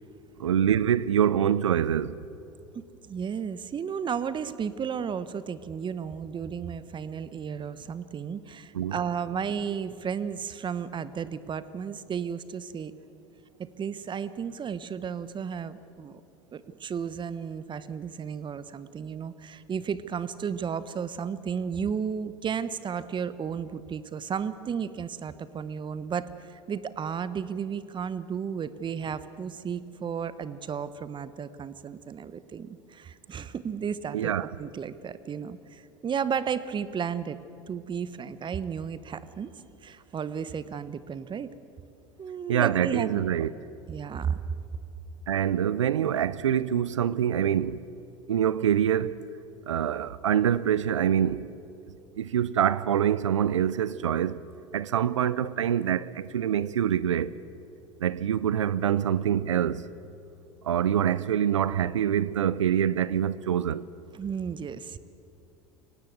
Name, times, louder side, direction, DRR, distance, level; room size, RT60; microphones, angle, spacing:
voice 1, 0.4-2.2 8.7-9.0 34.1-34.5 42.5-43.5 45.3-47.8 48.3-49.1 49.7-51.5 52.2-54.4 54.7-57.3 58.0-59.9 60.6-63.9, right 9 dB, 85° right, 0.6 m, -25 dB
voice 2, 2.7-12.9 13.6-16.2 16.5-34.3 34.6-37.4 37.7-39.5 39.8-41.5 42.2-43.5 43.9-44.4 64.1-65.0, right 7 dB, 30° right, 1.1 m, -33 dB
23.0 x 18.0 x 8.0 m
hypercardioid pair, 75°, 15 cm